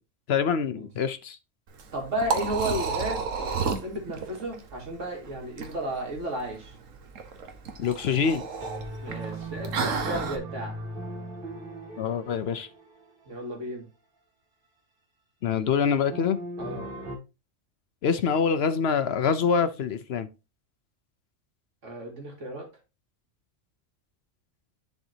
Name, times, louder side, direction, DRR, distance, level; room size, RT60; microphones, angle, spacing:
voice 1, 0.3-1.4 7.8-8.4 12.0-12.7 15.4-16.4 18.0-20.3, left 6 dB, 60° left, 0.8 m, -25 dB
Liquid, 1.7-10.4, right 5 dB, 90° right, 1.4 m, -32 dB
voice 2, 1.9-6.7 9.0-10.8 13.3-13.9 16.6-16.9 21.8-22.7, right 1 dB, 70° right, 2.4 m, -33 dB
sound 1, 8.4-13.2 16.1-17.2, right 1 dB, 40° right, 2.5 m, -38 dB
10.5 x 4.4 x 2.8 m
omnidirectional pair, 1.3 m